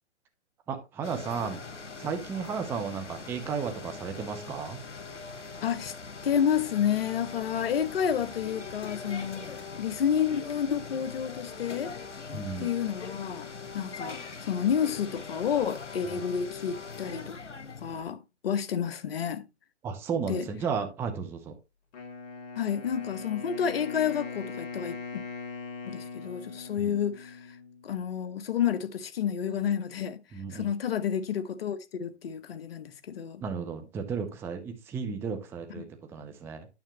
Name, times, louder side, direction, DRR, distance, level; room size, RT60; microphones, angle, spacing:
voice 1, 0.7-4.8 12.3-12.8 16.1-16.2 19.8-21.5 26.8-27.0 30.3-30.7 33.4-36.7, right 6 dB, 5° right, 0.5 m, -34 dB
sound 1, 1.0-18.0, left 5 dB, 90° left, 1.2 m, -42 dB
voice 2, 5.6-5.9 6.2-9.5 9.8-11.9 12.6-14.2 14.5-17.4 17.8-19.4 20.3-20.5 22.6-25.2 25.9-27.5 27.8-30.2 30.5-33.4 35.8-35.9, left 8 dB, 55° left, 1.1 m, -30 dB
Wind instrument woodwind instrument, 21.9-27.9, left 5 dB, 35° left, 2.3 m, -41 dB
9.2 x 7.0 x 3.0 m
figure-of-eight pair, 130°, 35 cm